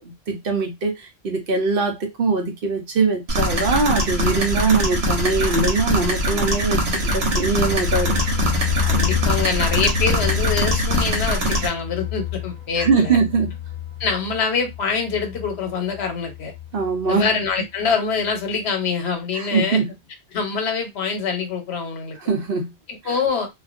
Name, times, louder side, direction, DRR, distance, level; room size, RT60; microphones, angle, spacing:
voice 1, 0.0-8.1 12.8-13.5 16.7-17.3 19.3-19.9 22.2-22.7 23.0-23.2, right 4 dB, 60° right, 0.8 m, -22 dB
sound 1, 3.3-11.7, equal, 90° right, 1.1 m, -22 dB
sound 2, 6.9-17.5 17.8-17.9 18.3-18.4, left 12 dB, 50° left, 0.4 m, -29 dB
voice 2, 8.9-13.2 14.0-16.5 17.1-19.8 20.3-22.2 22.9-23.5, left 5 dB, 85° left, 1.0 m, -24 dB
2.4 x 2.2 x 2.4 m
omnidirectional pair, 1.1 m